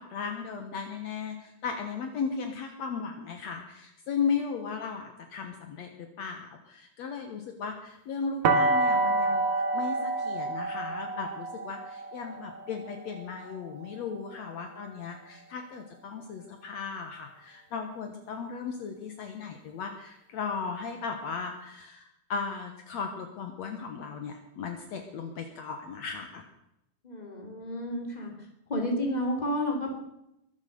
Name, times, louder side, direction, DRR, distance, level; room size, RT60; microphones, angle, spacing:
voice 1, 0.0-26.4, left 5 dB, 65° left, 5 dB, 2.3 m, -36 dB
sound 1, 8.4-14.3, right 3 dB, 70° right, 2.9 m, -28 dB
voice 2, 27.0-28.3 28.7-30.0, left 1 dB, 15° left, 2 dB, 3.0 m, -31 dB
22.5 x 8.2 x 6.8 m, 0.83 s
omnidirectional pair, 3.6 m